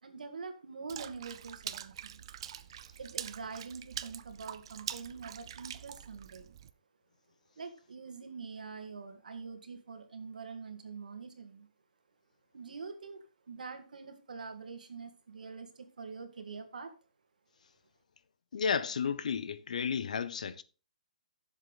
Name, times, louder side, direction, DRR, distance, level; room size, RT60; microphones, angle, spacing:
voice 1, 0.0-2.2 3.0-6.5 7.6-11.7 12.5-16.9, right 5 dB, 80° right, 2.0 m, -45 dB
Water / Splash splatter, 0.9-6.7, right 10 dB, 40° right, 0.5 m, -44 dB
voice 2, 18.5-20.6, left 6 dB, 65° left, 0.8 m, -32 dB
10.5 x 7.4 x 4.1 m
hypercardioid pair, 170°, 4 cm